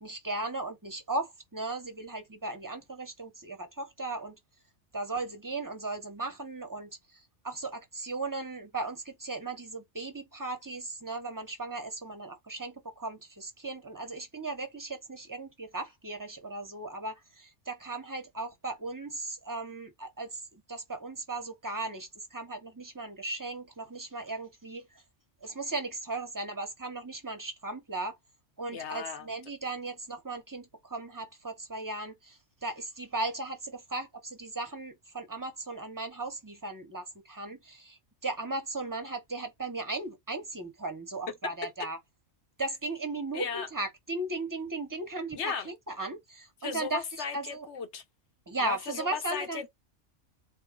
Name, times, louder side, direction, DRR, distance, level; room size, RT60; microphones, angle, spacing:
voice 1, 0.0-4.4 4.9-25.0 25.4-28.1 28.6-42.0 42.6-47.0 47.3-47.7 48.5-49.7, right 2 dB, 20° right, 0.9 m, -37 dB
voice 2, 28.7-29.3 41.4-41.5 43.3-43.7 45.4-45.7 46.6-48.0 48.6-49.7, left 6 dB, 65° left, 1.2 m, -36 dB
4.0 x 2.6 x 3.7 m
omnidirectional pair, 1.3 m